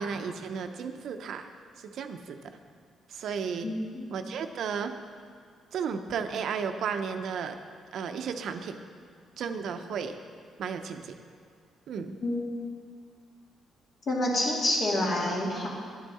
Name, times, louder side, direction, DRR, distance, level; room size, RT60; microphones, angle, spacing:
voice 1, 0.0-1.5 1.8-2.6 3.1-3.7 4.1-4.9 5.7-7.6 7.9-8.8 9.4-10.2 10.6-11.1 11.9-12.2, right 6 dB, 70° right, 7 dB, 0.6 m, -34 dB
voice 2, 3.6-4.0 12.2-12.4 14.1-15.7, left 1 dB, 55° left, -3 dB, 2.4 m, -28 dB
10.0 x 9.3 x 4.2 m, 2.2 s
cardioid pair, 90°, 0 cm